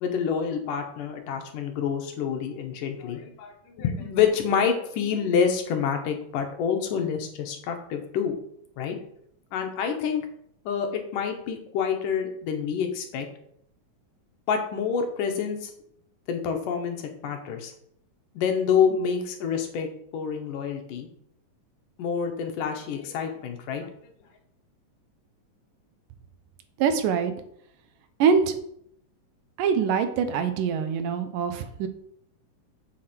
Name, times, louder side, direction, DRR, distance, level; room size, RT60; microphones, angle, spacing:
voice 1, 0.0-8.4 8.8-9.0 9.5-10.3 10.7-13.3 14.5-15.7 16.3-17.7 18.4-21.1 22.0-23.9, left 7 dB, 75° left, 4 dB, 2.6 m, -27 dB
voice 2, 26.8-27.3 28.2-28.6 29.6-31.9, right 6 dB, 75° right, 9 dB, 2.4 m, -24 dB
7.6 x 6.7 x 4.4 m, 0.69 s
omnidirectional pair, 3.9 m